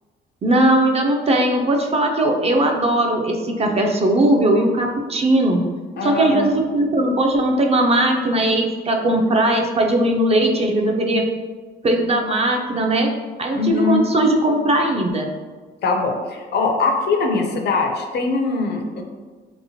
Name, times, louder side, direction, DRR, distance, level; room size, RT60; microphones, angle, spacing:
voice 1, 0.4-5.6 6.0-11.2 11.8-13.1 13.4-15.3, right 1 dB, 30° right, 2 dB, 0.4 m, -19 dB
voice 2, 6.0-6.5 13.5-14.0 15.8-19.0, left 4 dB, 55° left, 3 dB, 0.5 m, -22 dB
2.9 x 2.1 x 2.7 m, 1.4 s
cardioid pair, 90°, 20 cm